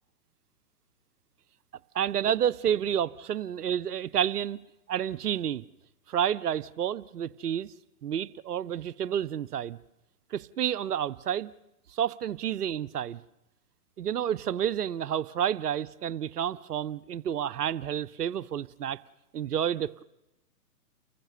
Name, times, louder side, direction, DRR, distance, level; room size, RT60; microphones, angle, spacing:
voice 1, 1.9-4.6 4.9-5.6 6.1-7.7 8.0-9.8 10.3-11.5 11.9-13.2 14.0-19.0 19.3-20.0, right 9 dB, 70° right, 0.8 m, -30 dB
29.5 x 15.0 x 6.8 m
hypercardioid pair, 125°, 47 cm